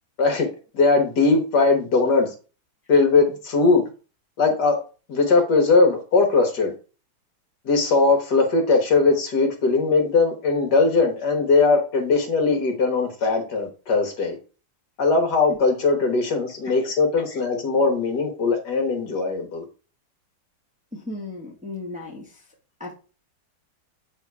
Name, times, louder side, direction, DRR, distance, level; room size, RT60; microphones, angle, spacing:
voice 1, 0.7-2.3 2.9-3.8 4.4-4.8 5.1-6.7 7.7-14.4 15.0-19.6, left 3 dB, 60° left, 4 dB, 1.8 m, -20 dB
voice 2, 20.9-22.4 22.8-22.9, left 2 dB, 5° right, -3 dB, 1.2 m, -35 dB
8.0 x 3.7 x 4.7 m, 0.36 s
omnidirectional pair, 2.2 m